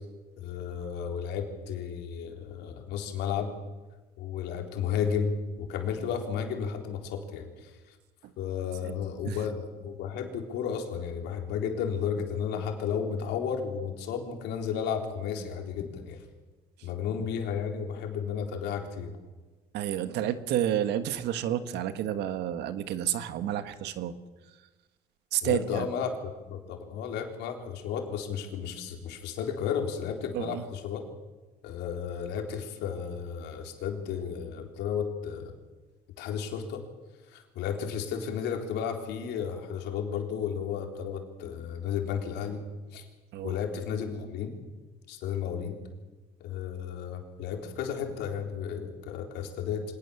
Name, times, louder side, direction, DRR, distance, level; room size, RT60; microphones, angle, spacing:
voice 1, 0.4-3.5 4.2-7.9 8.4-16.2 16.8-19.1 25.4-31.0 31.6-35.5 36.2-36.8 37.3-42.6 42.9-43.1 43.4-44.5 45.1-45.7 46.4-49.8, left 7 dB, 85° left, 3 dB, 4.0 m, -33 dB
voice 2, 19.7-24.1 25.3-25.9 30.3-30.6 43.3-43.6, right 11 dB, 80° right, 11 dB, 1.6 m, -30 dB
25.0 x 19.0 x 7.2 m, 1.2 s
cardioid pair, 110°, 17 cm